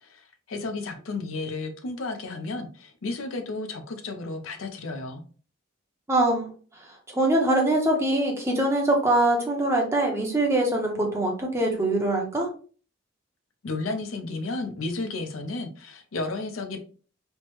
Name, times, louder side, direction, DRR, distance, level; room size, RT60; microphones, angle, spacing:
voice 1, 0.0-5.2 13.6-16.8, left 3 dB, 80° left, 0.5 m, -33 dB
voice 2, 6.1-6.5 7.1-12.5, right 1 dB, 15° right, 0.6 m, -23 dB
3.2 x 2.1 x 3.0 m
head